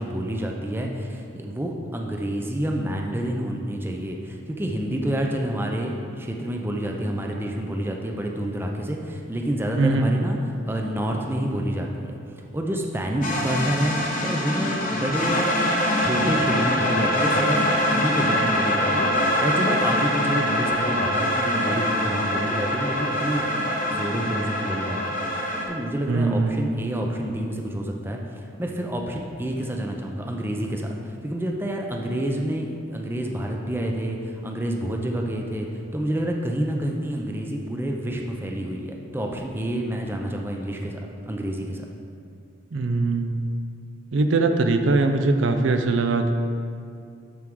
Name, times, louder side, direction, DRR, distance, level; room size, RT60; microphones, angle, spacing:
voice 1, 0.0-10.4 10.7-12.1 12.5-23.5 23.9-41.0 41.3-41.9, right 1 dB, 10° right, 1 dB, 0.5 m, -28 dB
voice 2, 9.8-10.2 26.1-26.9 42.7-43.4 44.1-46.3, right 3 dB, 65° right, 6 dB, 0.4 m, -21 dB
sound 1, 13.2-25.6, left 1 dB, 40° left, 0.9 m, -24 dB
12.0 x 4.5 x 3.7 m, 2.4 s
head